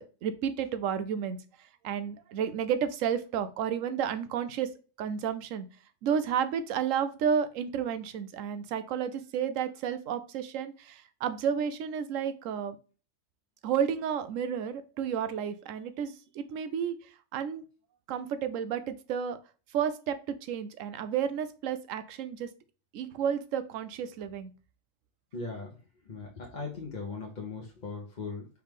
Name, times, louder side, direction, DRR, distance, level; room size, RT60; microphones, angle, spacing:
voice 1, 0.0-4.7 5.0-5.7 6.0-12.8 13.6-17.0 17.3-17.6 18.1-19.4 19.7-22.5 22.9-24.5, right 8 dB, 90° right, 11 dB, 1.0 m, -31 dB
voice 2, 25.3-25.7 26.0-28.5, left 4 dB, 40° left, -1 dB, 0.9 m, -39 dB
4.6 x 3.2 x 3.5 m, 0.36 s
omnidirectional pair, 1.3 m